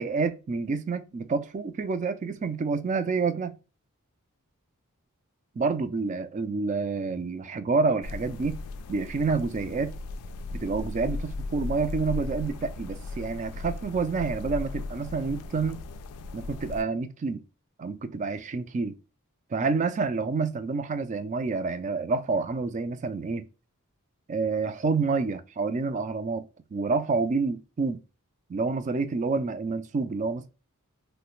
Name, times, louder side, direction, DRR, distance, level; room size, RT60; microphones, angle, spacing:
voice 1, 0.0-3.5 5.6-8.6 8.9-9.9 10.5-15.8 16.3-17.4 17.8-18.9 19.5-23.5 24.3-28.0 28.5-30.5, right 4 dB, 35° right, 0.3 m, -28 dB
sound 1, 8.0-16.8, left 3 dB, 90° left, 0.3 m, -37 dB
3.1 x 2.1 x 3.0 m
head